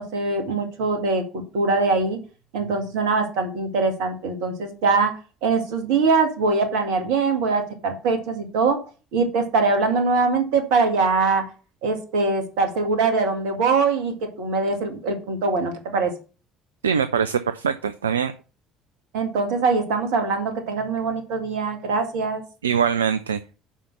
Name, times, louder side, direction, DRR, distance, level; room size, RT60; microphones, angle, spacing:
voice 1, 0.0-2.2 2.5-8.8 9.1-11.5 11.8-16.1 19.1-22.4, right 4 dB, 65° right, 6 dB, 2.0 m, -22 dB
voice 2, 16.8-18.3 22.6-23.4, right 7 dB, 80° right, 11 dB, 0.4 m, -22 dB
7.1 x 5.6 x 7.1 m, 0.36 s
figure-of-eight pair, 55°, 0 cm